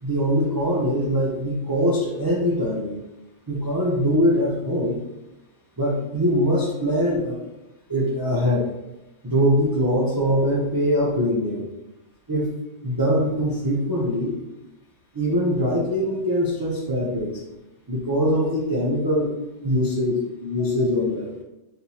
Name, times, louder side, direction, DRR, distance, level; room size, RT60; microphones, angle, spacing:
voice 1, 0.0-3.0 3.5-5.0 5.8-7.4 7.9-8.7 9.2-11.6 12.3-12.5 12.8-14.4 15.1-17.4 17.9-21.3, equal, 25° right, -5 dB, 0.5 m, -22 dB
4.2 x 3.4 x 2.9 m, 0.93 s
omnidirectional pair, 1.3 m